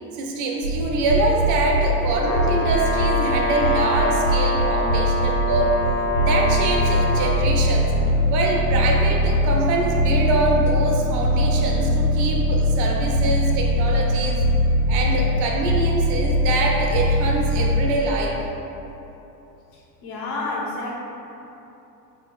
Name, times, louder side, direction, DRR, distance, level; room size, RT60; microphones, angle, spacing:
voice 1, 0.1-5.8 6.2-7.9 8.3-14.5 14.9-18.4, right 2 dB, 40° right, 0 dB, 0.5 m, -24 dB
sound 1, 0.6-17.9, equal, 90° right, 0.7 m, -22 dB
Brass instrument, 2.1-7.4, left 2 dB, 75° left, 0.6 m, -25 dB
voice 2, 20.0-21.0, left 2 dB, 45° left, -2 dB, 0.8 m, -29 dB
3.9 x 3.1 x 2.3 m, 2.9 s
hypercardioid pair, 90°, 49 cm